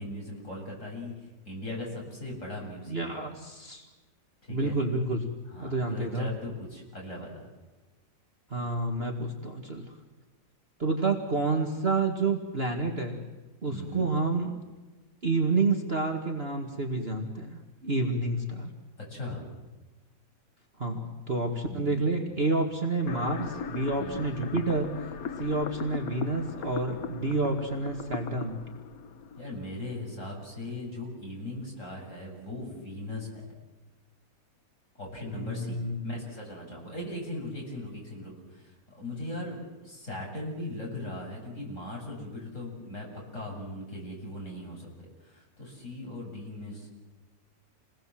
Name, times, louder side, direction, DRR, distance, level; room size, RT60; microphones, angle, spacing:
voice 1, 0.0-3.2 4.4-4.8 5.5-7.4 13.7-14.1 19.0-19.5 21.7-22.0 24.0-24.2 29.4-33.4 34.9-43.1 43.3-46.9, left 1 dB, 40° left, -2 dB, 8.2 m, -39 dB
voice 2, 2.9-3.9 4.5-5.3 5.6-6.3 8.5-9.9 10.8-13.3 13.6-14.6 15.2-18.7 20.8-24.9 25.4-28.6 35.3-36.2, right 3 dB, 35° right, 2 dB, 2.3 m, -29 dB
sound 1, 23.1-30.1, left 6 dB, 55° left, 1.4 m, -38 dB
28.5 x 20.5 x 7.8 m, 1.2 s
omnidirectional pair, 2.0 m